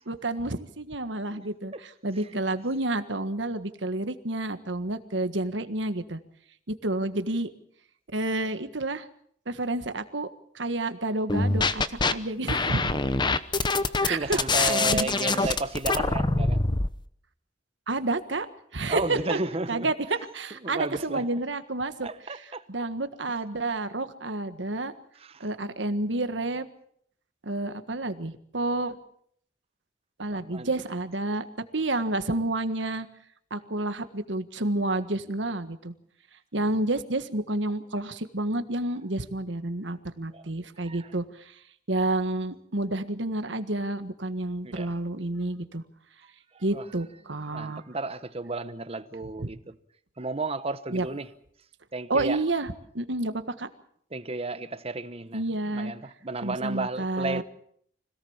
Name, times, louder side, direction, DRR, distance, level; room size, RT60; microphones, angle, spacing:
voice 1, 0.1-6.2 6.7-7.5 8.1-9.1 9.5-10.3 10.6-13.0 14.0-15.1 15.4-15.5 17.9-18.5 18.7-19.4 19.7-22.4 22.7-24.9 25.4-26.7 27.4-29.0 30.2-31.5 31.7-33.1 33.5-35.9 36.5-41.5 41.9-45.8 46.6-47.8 49.4-49.5 50.9-51.1 52.1-53.7 55.3-55.9 56.4-57.4, right 2 dB, 75° right, 1.6 m, -30 dB
sound 1, 11.3-12.1 12.5-16.9, left 3 dB, 25° left, 0.9 m, -24 dB
voice 2, 13.6-16.6 18.9-19.9 20.6-21.3 22.0-22.6 25.2-25.5 30.3-30.7 36.7-36.8 40.3-40.5 40.8-41.1 44.6-44.9 46.5-46.8 47.5-49.8 50.2-51.3 51.9-52.4 54.1-55.4 55.7-57.4, right 3 dB, 35° right, 1.1 m, -33 dB
25.5 x 17.5 x 7.3 m
head